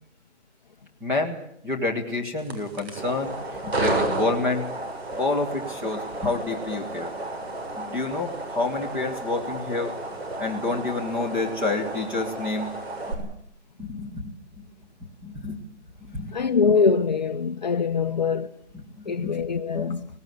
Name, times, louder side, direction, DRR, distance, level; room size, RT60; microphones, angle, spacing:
voice 1, 1.0-1.4 1.6-3.4 3.6-4.6 5.2-7.1 7.8-9.9 10.4-12.7 13.2-13.3 13.8-14.3 15.2-15.6 16.1-16.3 19.2-19.4 19.7-19.9, left 3 dB, 5° right, 1.6 m, -28 dB
sound 1, 2.4-13.1, right 2 dB, 60° right, 7.3 m, -32 dB
voice 2, 16.3-18.5 19.0-20.1, left 5 dB, 35° left, 1.1 m, -23 dB
19.5 x 19.0 x 9.5 m
hypercardioid pair, 170°, 36 cm